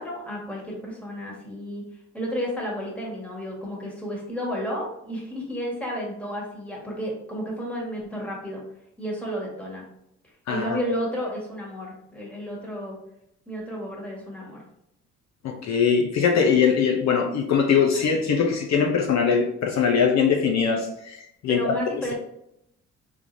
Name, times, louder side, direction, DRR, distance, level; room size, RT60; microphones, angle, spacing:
voice 1, 0.0-1.8 2.1-8.6 9.0-9.8 10.5-13.0 13.5-14.6 21.5-22.1, equal, 5° left, -3 dB, 1.4 m, -32 dB
voice 2, 10.5-10.8 15.4-22.1, left 6 dB, 65° left, 2 dB, 0.6 m, -22 dB
3.5 x 3.2 x 2.6 m, 0.79 s
cardioid pair, 90°, 30 cm